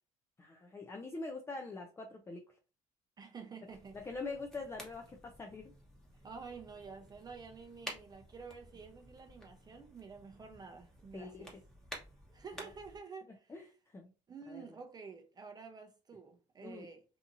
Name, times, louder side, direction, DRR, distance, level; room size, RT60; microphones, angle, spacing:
voice 1, 0.4-2.4 3.9-5.7 11.1-11.5 13.5-13.7 13.9-14.1 14.5-14.6 16.6-16.9, left 3 dB, 20° left, 0.4 m, -44 dB
voice 2, 3.2-4.1 6.2-11.5 12.3-13.5 14.3-17.0, right 5 dB, 30° right, 0.6 m, -50 dB
sound 1, 3.7-13.0, equal, 5° left, 1.0 m, -52 dB
2.8 x 2.6 x 2.6 m
cardioid pair, 100°, 13 cm